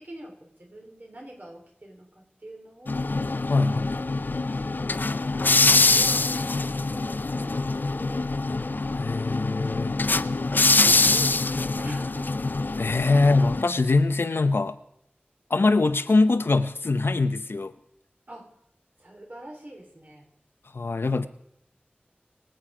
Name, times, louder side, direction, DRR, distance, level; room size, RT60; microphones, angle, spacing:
voice 1, 0.0-3.1 3.7-3.9 4.5-5.1 5.5-6.3 6.7-8.4 10.9-12.3 13.1-13.4 18.3-18.5 19.0-20.3, right 1 dB, 50° right, 1 dB, 3.7 m, -45 dB
sound 1, 2.9-13.6, left 3 dB, 55° left, 0.4 m, -24 dB
voice 2, 3.5-3.9 9.0-10.0 12.8-14.7 15.5-17.7 20.7-21.3, left 3 dB, 90° left, 11 dB, 0.7 m, -23 dB
23.5 x 7.8 x 5.0 m, 0.75 s
wide cardioid pair, 50°, 4 cm